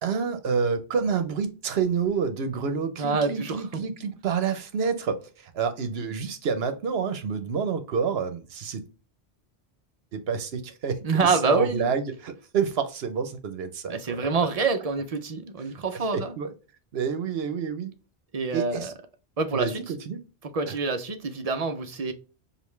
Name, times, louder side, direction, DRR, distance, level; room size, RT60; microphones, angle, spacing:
voice 1, 0.0-8.8 10.1-14.2 16.1-16.5 16.9-17.9 18.5-18.9 19.5-20.2 20.7-20.8, right 6 dB, 70° right, 1.0 m, -28 dB
voice 2, 3.0-3.6 11.0-11.9 13.9-16.3 18.3-18.9 19.4-19.8 20.5-22.1, right 4 dB, 45° right, 0.6 m, -26 dB
5.1 x 2.5 x 3.2 m
omnidirectional pair, 1.1 m